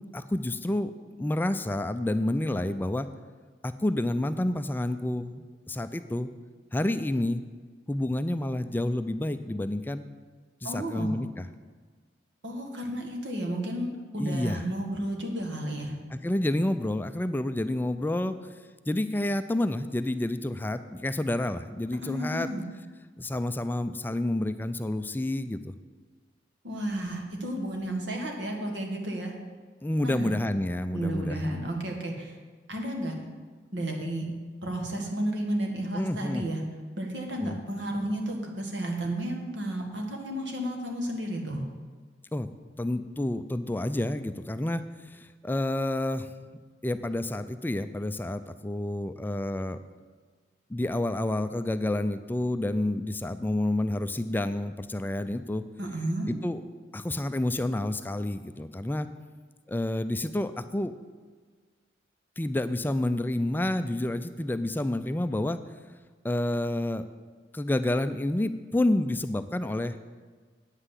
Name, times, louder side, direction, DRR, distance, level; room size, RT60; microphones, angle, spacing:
voice 1, 0.1-0.9 1.2-3.1 3.6-6.3 6.7-7.4 7.9-10.1 10.6-11.5 14.2-14.6 16.1-18.4 18.9-22.5 23.2-25.7 29.8-31.6 35.9-36.4 37.4-37.6 42.3-42.5 42.8-46.3 46.8-49.8 50.7-55.6 56.3-56.6 56.9-59.1 59.7-60.9 62.4-65.6 66.2-67.0 67.5-70.0, left 1 dB, 10° left, 11 dB, 0.3 m, -29 dB
voice 2, 10.6-11.2 12.4-15.9 22.0-22.6 26.6-29.3 30.0-30.3 30.9-32.4 32.7-33.1 33.7-34.2 34.6-36.6 37.0-41.7 55.8-56.3, right 1 dB, 85° right, 1 dB, 1.8 m, -32 dB
8.9 x 5.7 x 8.1 m, 1.5 s
head